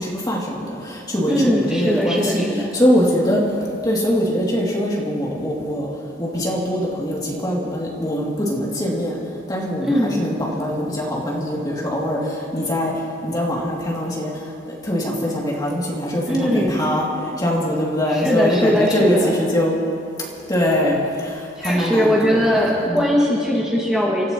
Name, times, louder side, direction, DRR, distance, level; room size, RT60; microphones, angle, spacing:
voice 1, 0.0-3.4 3.8-5.9 6.2-9.2 9.5-12.9 13.2-14.3 14.8-17.1 17.4-19.7 20.5-21.3 21.6-23.0, equal, 20° left, -3 dB, 2.6 m, -22 dB
voice 2, 1.3-2.7 9.8-10.2 16.3-16.9 18.1-19.3 21.6-24.3, equal, 5° right, -5 dB, 1.9 m, -20 dB
30.0 x 14.0 x 3.0 m, 2.5 s
head